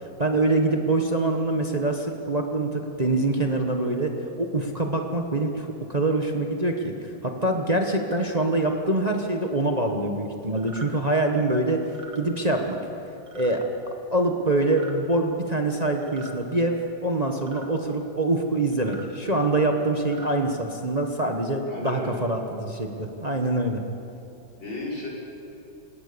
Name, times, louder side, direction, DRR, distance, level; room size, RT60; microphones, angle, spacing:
voice 1, 0.2-6.9 7.2-11.8 12.1-12.8 13.3-13.7 14.1-23.8, right 2 dB, 25° right, 3 dB, 1.3 m, -25 dB
sound 1, 10.6-10.9 11.8-12.2 13.3-13.6 14.6-15.0 16.0-16.4 17.4-17.7 18.7-19.1 19.9-20.4, right 3 dB, 70° right, 3.1 m, -44 dB
voice 2, 21.7-22.2 24.6-25.1, left 1 dB, 85° left, -5 dB, 6.5 m, -33 dB
30.0 x 17.5 x 7.0 m, 2.9 s
omnidirectional pair, 2.1 m